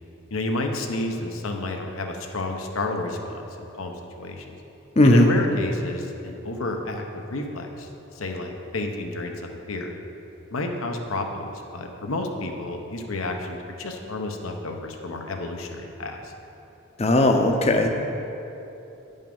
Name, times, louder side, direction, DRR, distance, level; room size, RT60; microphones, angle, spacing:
voice 1, 0.3-4.6 5.0-7.9 8.1-9.9 10.5-16.3, left 2 dB, 85° left, 3 dB, 0.9 m, -30 dB
voice 2, 5.0-5.3 17.0-17.9, left 1 dB, 30° left, 5 dB, 0.6 m, -17 dB
9.4 x 5.5 x 5.4 m, 3.0 s
head